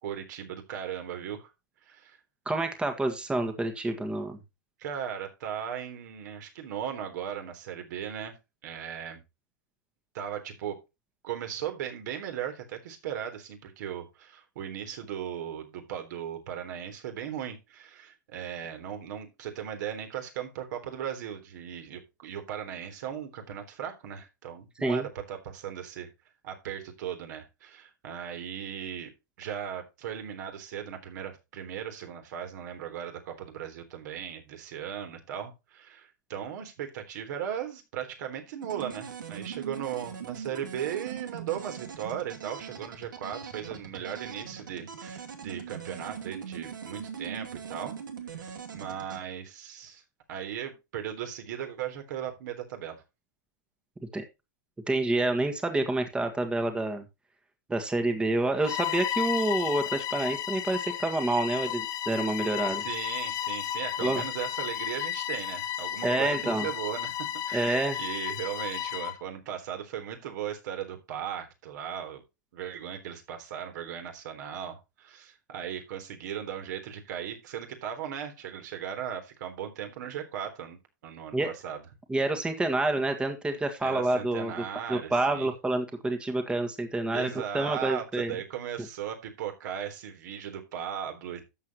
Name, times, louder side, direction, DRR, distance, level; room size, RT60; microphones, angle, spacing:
voice 1, 0.0-1.5 1.8-2.2 4.8-8.3 8.6-9.2 10.1-10.8 11.2-26.1 26.4-29.1 29.4-48.0 48.3-50.0 50.3-53.0 62.6-67.1 67.5-72.2 72.5-81.8 83.8-85.5 87.1-91.5, right 9 dB, 65° right, 5 dB, 3.5 m, -37 dB
voice 2, 2.4-4.4 24.8-25.1 54.1-54.2 54.9-57.0 57.7-62.8 64.0-64.2 66.0-66.7 67.5-68.0 81.3-81.5 82.1-84.5 84.9-88.3, right 2 dB, 10° right, 6 dB, 1.6 m, -28 dB
sound 1, 38.6-49.2, right 7 dB, 80° right, 2.5 m, -41 dB
Bowed string instrument, 58.6-69.2, left 11 dB, 35° left, 1.2 m, -33 dB
12.5 x 7.5 x 3.0 m, 0.25 s
hypercardioid pair, 110°, 10 cm